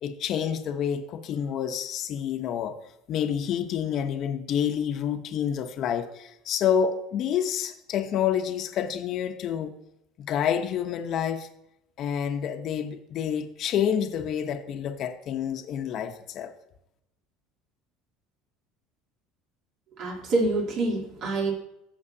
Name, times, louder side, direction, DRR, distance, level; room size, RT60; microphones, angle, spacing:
voice 1, 0.0-2.8 3.1-9.7 10.2-11.5 12.0-16.5, left 8 dB, 50° left, 0.9 m, -28 dB
voice 2, 20.0-21.5, right 2 dB, 55° right, 3.2 m, -26 dB
15.0 x 6.4 x 2.8 m
supercardioid pair, 120°, 0 cm